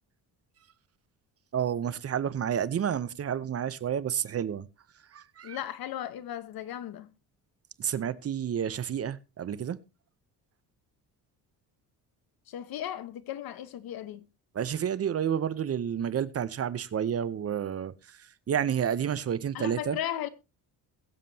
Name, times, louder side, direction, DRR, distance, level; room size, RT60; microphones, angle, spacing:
voice 1, 1.5-4.7 5.1-5.6 7.8-9.8 14.5-20.0, right 8 dB, 35° right, 0.7 m, -30 dB
voice 2, 5.4-7.1 12.5-14.3 19.5-20.3, left 11 dB, 60° left, 1.1 m, -36 dB
21.5 x 7.5 x 2.8 m
cardioid pair, 140°, 40 cm